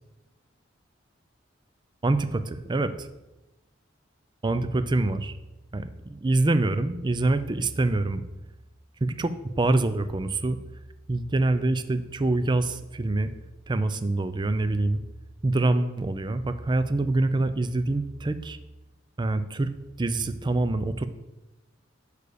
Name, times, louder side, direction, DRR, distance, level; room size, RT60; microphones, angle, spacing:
voice 1, 2.0-3.1 4.4-5.3 5.7-8.2 9.0-10.6 11.1-13.3 13.7-15.0 15.4-18.6 19.2-19.7 20.0-21.1, right 2 dB, 25° right, 11 dB, 0.4 m, -25 dB
6.5 x 4.9 x 6.8 m, 1.0 s
head